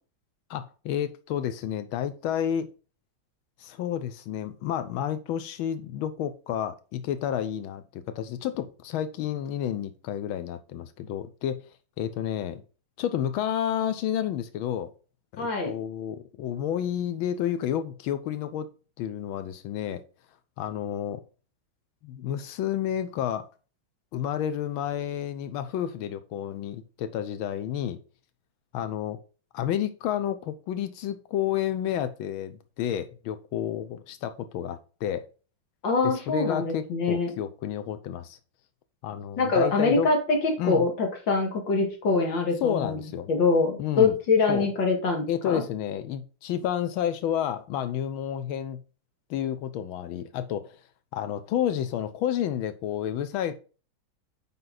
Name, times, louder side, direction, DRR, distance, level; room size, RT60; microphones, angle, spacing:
voice 1, 0.5-2.7 3.6-11.6 12.0-12.6 13.0-14.9 15.3-18.7 19.0-20.0 20.6-21.2 22.0-23.5 24.1-28.0 28.7-29.2 29.5-35.3 36.0-38.4 39.0-40.1 40.6-40.8 42.6-43.3 43.8-44.2 44.5-44.7 45.3-48.8 49.3-50.8 51.1-53.6, left 10 dB, 85° left, 1.5 m, -30 dB
voice 2, 15.4-15.7 35.8-37.3 39.4-43.0 43.3-45.6, left 3 dB, 65° left, 2.4 m, -24 dB
7.7 x 5.4 x 4.0 m
omnidirectional pair, 2.2 m